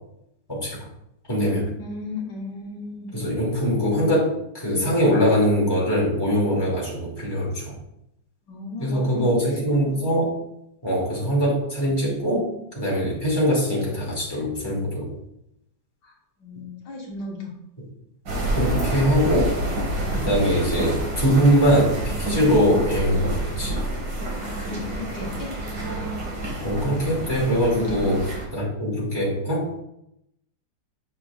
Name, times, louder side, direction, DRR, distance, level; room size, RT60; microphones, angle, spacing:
voice 1, 0.5-0.9 1.3-1.7 3.1-7.7 8.8-10.4 10.8-15.1 18.5-19.6 20.2-23.8 26.6-28.2 28.5-29.8, equal, 15° left, -5 dB, 2.5 m, -22 dB
voice 2, 1.8-3.1 8.5-9.3 9.7-10.0 16.0-17.5 20.0-20.2 22.3-22.5 24.4-25.5 27.7-28.1, left 3 dB, 70° left, -2 dB, 1.9 m, -34 dB
sound 1, 18.3-28.4, right 1 dB, 80° right, 2.7 m, -28 dB
9.5 x 6.1 x 2.4 m, 0.80 s
omnidirectional pair, 2.0 m